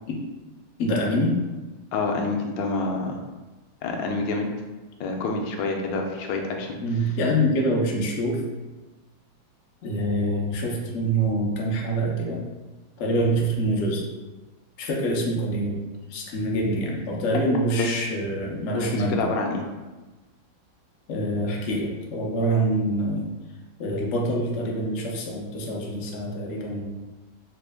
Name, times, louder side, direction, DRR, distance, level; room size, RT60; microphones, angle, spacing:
voice 1, 0.8-1.4 6.8-8.4 9.8-12.4 13.0-14.0 14.8-19.3 21.1-23.3 23.8-27.0, right 1 dB, 90° left, -2 dB, 0.6 m, -25 dB
voice 2, 1.9-3.2 3.8-4.5 5.0-6.8 17.8-18.0 18.8-19.6, left 3 dB, 75° left, 1 dB, 1.2 m, -27 dB
4.3 x 2.1 x 3.3 m, 1.2 s
omnidirectional pair, 2.2 m